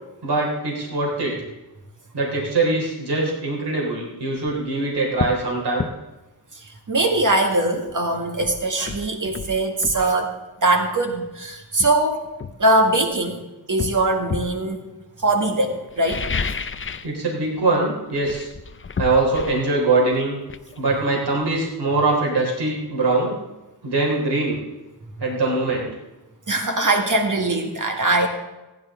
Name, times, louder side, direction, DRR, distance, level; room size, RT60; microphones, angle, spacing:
voice 1, 0.2-1.3 2.1-5.9 17.0-18.5 19.0-20.3 20.8-23.3 23.8-24.6 25.2-25.9, right 2 dB, 70° right, -2 dB, 3.9 m, -22 dB
sound 1, 4.4-4.6 5.2-5.4 5.8-6.0 7.9-8.0 8.4-10.1 11.1-11.3 11.8-13.2 13.8-14.6 15.9-17.2 17.4-17.8 18.1-21.7 22.0-22.1, left 5 dB, 30° left, 0.5 m, -31 dB
voice 2, 6.5-12.2 12.6-13.4 13.7-14.8 15.2-16.3 26.5-28.3, right 2 dB, 45° right, 3 dB, 2.0 m, -21 dB
15.5 x 10.5 x 3.7 m, 1.0 s
wide cardioid pair, 85°, 41 cm